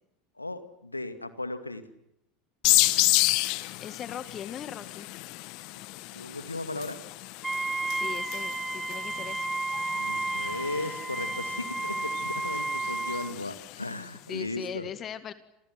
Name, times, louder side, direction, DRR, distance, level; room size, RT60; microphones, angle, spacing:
voice 1, 0.4-1.8 6.1-7.0 9.9-14.9, left 2 dB, 90° left, 9 dB, 2.2 m, -36 dB
sound 1, 2.6-14.0, left 22 dB, 55° left, 1.2 m, -31 dB
voice 2, 3.8-5.1 7.8-9.5 14.3-15.3, left 9 dB, 35° left, 11 dB, 1.9 m, -39 dB
Wind instrument woodwind instrument, 7.4-13.4, right 2 dB, 10° right, 1.5 m, -32 dB
29.0 x 28.0 x 6.2 m, 0.85 s
figure-of-eight pair, 75°, 0 cm